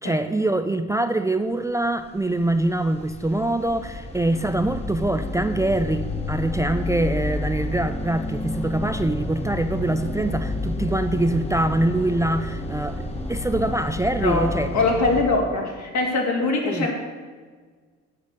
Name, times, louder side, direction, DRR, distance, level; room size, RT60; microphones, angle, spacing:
voice 1, 0.0-14.7 16.7-16.9, right 2 dB, 10° right, 8 dB, 0.4 m, -24 dB
sound 1, 2.1-15.2, left 2 dB, 20° left, 1.4 m, -30 dB
voice 2, 14.2-16.9, left 3 dB, 65° left, 0 dB, 2.6 m, -22 dB
8.2 x 7.9 x 6.5 m, 1.5 s
cardioid pair, 90°, 30 cm